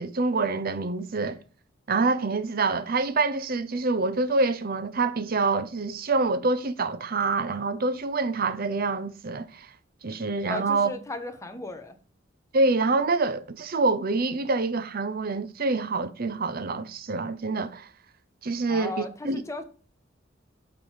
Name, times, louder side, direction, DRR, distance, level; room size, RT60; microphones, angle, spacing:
voice 1, 0.0-1.4 1.9-9.7 10.0-10.9 12.5-17.9 18.4-19.4, right 3 dB, 50° right, 0.7 m, -26 dB
voice 2, 10.4-12.0 18.7-19.6, left 2 dB, 15° left, 1.0 m, -36 dB
8.5 x 3.8 x 4.8 m
head